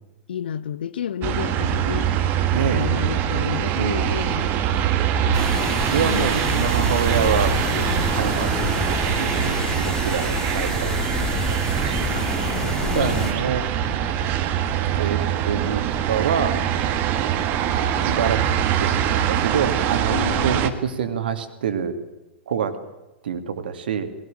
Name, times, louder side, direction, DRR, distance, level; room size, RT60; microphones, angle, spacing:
voice 1, 0.3-2.1 2.6-4.5 6.0-6.7 7.7-8.3 12.1-13.3 20.1-20.7, left 9 dB, 60° left, 0.9 m, -31 dB
sound 1, 1.2-20.7, right 9 dB, 30° right, 1.8 m, -23 dB
voice 2, 2.5-2.8 3.8-4.1 5.6-7.6 8.1-11.2 11.5-12.1 12.6-13.7 14.9-15.8 16.1-16.6 18.0-18.4 18.8-20.2 20.4-22.0 22.5-22.8 23.2-24.1, right 7 dB, 55° right, 2.4 m, -26 dB
sound 2, 5.3-13.3, left 3 dB, 10° left, 4.0 m, -28 dB
21.0 x 17.5 x 8.9 m
figure-of-eight pair, 100°, 6 cm